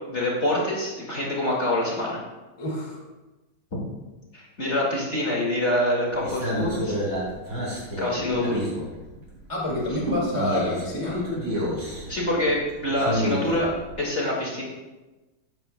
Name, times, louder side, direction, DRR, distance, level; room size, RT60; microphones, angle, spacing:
voice 1, 0.1-2.2 4.3-7.0 8.0-8.6 11.8-13.7 14.0-14.6, left 1 dB, 35° left, -4 dB, 2.3 m, -26 dB
voice 2, 2.6-3.0 9.5-11.2, left 1 dB, 15° left, -3 dB, 2.0 m, -28 dB
sound 1, 6.1-9.4 9.6-13.9, equal, 80° right, 5.1 m, -30 dB
15.0 x 11.5 x 2.2 m, 1.1 s
omnidirectional pair, 2.2 m